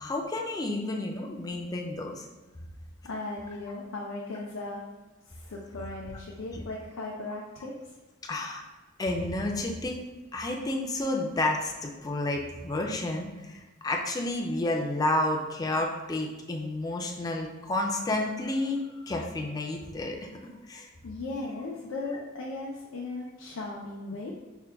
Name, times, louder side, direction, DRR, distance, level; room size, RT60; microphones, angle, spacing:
voice 1, 0.0-2.3 6.5-6.6 8.2-8.6 9.0-10.0 10.3-20.9, left 2 dB, 20° left, 1 dB, 0.4 m, -31 dB
voice 2, 3.0-4.8 5.3-7.9 21.0-24.3, left 2 dB, 85° left, -3 dB, 0.5 m, -37 dB
4.5 x 2.2 x 3.4 m, 1.2 s
head